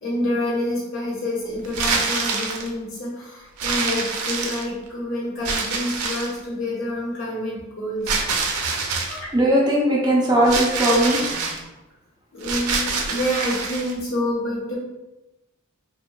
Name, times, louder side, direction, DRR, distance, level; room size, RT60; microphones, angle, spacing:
voice 1, 0.0-8.2 8.7-8.8 9.1-9.3 12.3-14.8, left 1 dB, 65° left, -6 dB, 1.0 m, -28 dB
Paper Bag Crunching, 1.6-2.7 3.6-4.9 5.4-6.4 8.1-9.2 10.4-11.6 12.4-13.9, right 4 dB, 85° right, 0.4 m, -25 dB
voice 2, 9.3-11.4, right 1 dB, 20° right, -4 dB, 0.4 m, -19 dB
2.6 x 2.2 x 2.2 m, 1.0 s
head